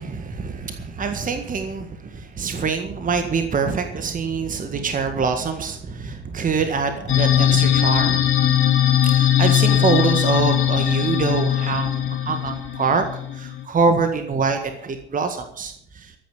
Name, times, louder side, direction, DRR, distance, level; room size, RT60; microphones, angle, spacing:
voice 1, 0.0-8.3 9.0-13.0 13.3-16.1, right 5 dB, 25° right, 7 dB, 1.8 m, -24 dB
sound 1, 7.1-13.6, left 11 dB, 35° left, 3.0 m, -20 dB
14.5 x 9.6 x 7.2 m, 0.70 s
figure-of-eight pair, 65°, 34 cm